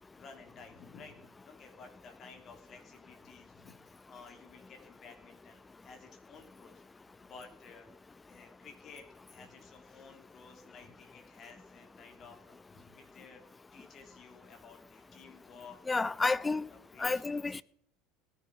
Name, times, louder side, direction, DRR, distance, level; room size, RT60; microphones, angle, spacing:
voice 1, 0.1-6.8 7.2-7.9 8.3-13.4 13.7-15.8 16.2-16.6 16.9-17.5, left 5 dB, 35° left, 3.1 m, -54 dB
voice 2, 15.9-16.6 17.0-17.6, left 3 dB, 15° left, 0.6 m, -30 dB
17.5 x 10.5 x 6.1 m
figure-of-eight pair, 70°, 0 cm